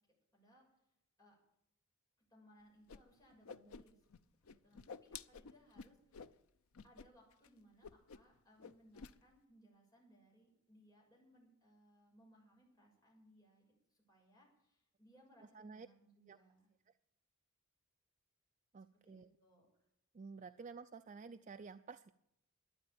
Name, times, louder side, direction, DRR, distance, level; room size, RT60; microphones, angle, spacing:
voice 1, 0.3-0.7 1.2-1.4 2.3-4.0 4.4-6.3 6.8-13.6 13.9-16.7 18.9-19.7, equal, 15° left, -3 dB, 6.8 m, -67 dB
Whoosh swoosh swish, 2.9-3.0 3.3-4.2 4.5-6.3 6.7-7.1 7.3-7.5 7.8-8.3 8.6-9.1, left 5 dB, 75° left, 0.6 m, -52 dB
voice 2, 15.5-15.9 16.3-16.4 16.9-17.0 18.7-19.3 20.1-22.1, right 5 dB, 35° right, 9 dB, 0.4 m, -52 dB
12.5 x 9.9 x 8.7 m, 0.78 s
head